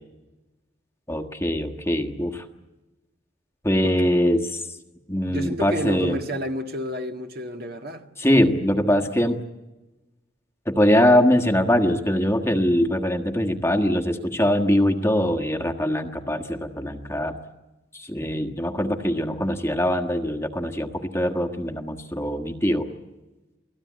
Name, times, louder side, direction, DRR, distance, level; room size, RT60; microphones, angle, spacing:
voice 1, 1.1-2.4 3.6-4.7 5.1-6.2 8.2-9.4 10.6-17.4 17.9-22.9, equal, 15° left, 1.5 m, -22 dB
voice 2, 5.3-8.1, equal, 50° right, 1.9 m, -30 dB
29.0 x 18.5 x 9.4 m
head